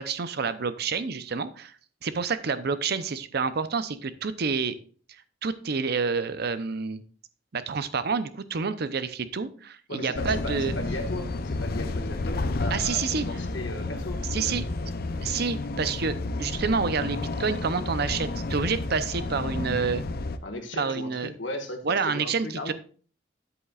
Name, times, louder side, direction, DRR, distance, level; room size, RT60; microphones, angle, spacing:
voice 1, 0.0-1.7 2.0-4.7 5.4-7.0 7.5-10.7 12.7-13.3 14.3-14.6 15.2-20.0 20.7-21.3 21.8-22.7, right 5 dB, 60° right, 13 dB, 0.6 m, -28 dB
voice 2, 9.9-14.5 20.4-22.7, left 1 dB, 90° left, 5 dB, 1.6 m, -37 dB
sound 1, 10.1-20.4, left 2 dB, 55° left, 0.6 m, -31 dB
9.9 x 8.0 x 2.4 m, 0.42 s
head